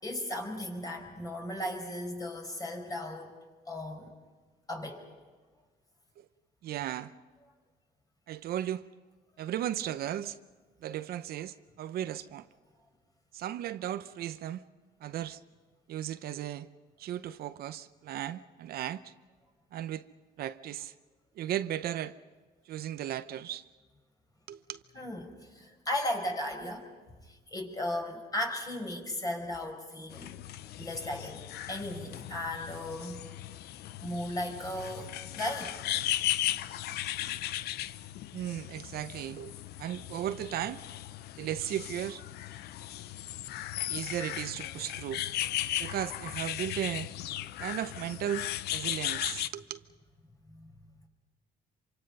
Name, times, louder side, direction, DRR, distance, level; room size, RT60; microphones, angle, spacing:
voice 1, 0.0-3.3 3.7-4.1 4.7-5.0 24.9-26.9 27.3-30.3 30.8-31.4 31.7-33.3 34.0-35.8 50.5-50.7, left 1 dB, 20° left, 5.1 m, -36 dB
voice 2, 6.6-7.1 8.3-8.8 9.4-10.4 10.8-12.5 13.3-14.6 15.0-15.4 15.9-16.7 17.0-19.1 19.7-20.1 20.4-20.9 21.4-22.1 22.7-23.6 24.5-24.8 38.3-39.5 39.8-40.8 41.4-42.2 43.8-45.2 45.8-47.1 47.6-49.8, right 11 dB, 65° right, 0.8 m, -36 dB
sound 1, 30.1-49.5, left 13 dB, 75° left, 0.7 m, -37 dB
26.5 x 25.0 x 5.5 m
cardioid pair, 110°, 17 cm